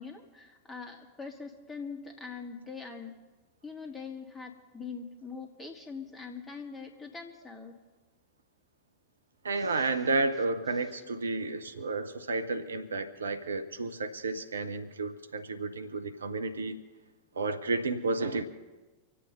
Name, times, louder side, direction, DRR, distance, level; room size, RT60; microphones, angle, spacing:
voice 1, 0.0-3.2 3.6-7.8 9.6-9.9, left 5 dB, 15° left, 2.3 m, -43 dB
voice 2, 9.4-16.8 17.4-18.4, right 3 dB, 70° right, 0.8 m, -31 dB
25.5 x 8.5 x 5.5 m
figure-of-eight pair, 90°, 0 cm